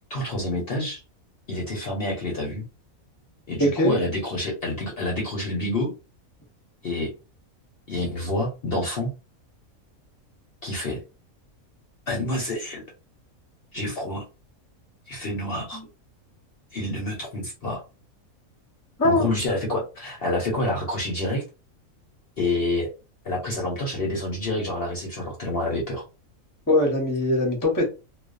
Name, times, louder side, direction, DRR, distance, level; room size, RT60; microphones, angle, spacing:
voice 1, 0.1-1.0 1.5-2.7 3.5-5.9 6.8-7.1 7.9-9.1 10.6-11.0 12.1-12.9 13.7-14.2 15.1-15.8 16.7-17.8 19.0-21.4 22.4-22.9 23.2-26.0, left 1 dB, 55° left, -2 dB, 0.8 m, -28 dB
voice 2, 3.6-3.9 15.7-15.8 19.0-19.3 26.7-27.8, left 1 dB, 20° left, 0 dB, 0.7 m, -21 dB
2.4 x 2.3 x 2.4 m, 0.30 s
omnidirectional pair, 1.5 m